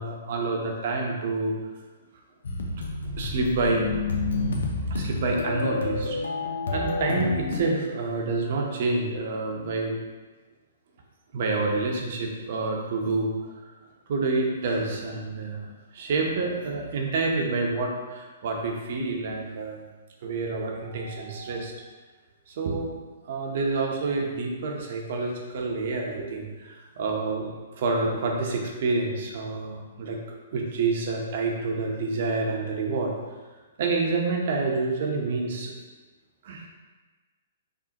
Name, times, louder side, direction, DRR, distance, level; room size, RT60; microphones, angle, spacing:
voice 1, 0.0-1.5 3.1-3.9 4.9-6.2 6.7-10.0 11.3-13.5 14.1-15.7 15.9-19.8 20.2-21.7 22.5-22.9 23.2-30.2 30.5-33.1 33.8-35.7 36.4-36.6, right 3 dB, 55° right, 0 dB, 0.8 m, -28 dB
sound 1, 2.4-7.6, left 3 dB, 85° left, 0.6 m, -29 dB
4.9 x 2.7 x 2.9 m, 1.3 s
hypercardioid pair, 145°, 0 cm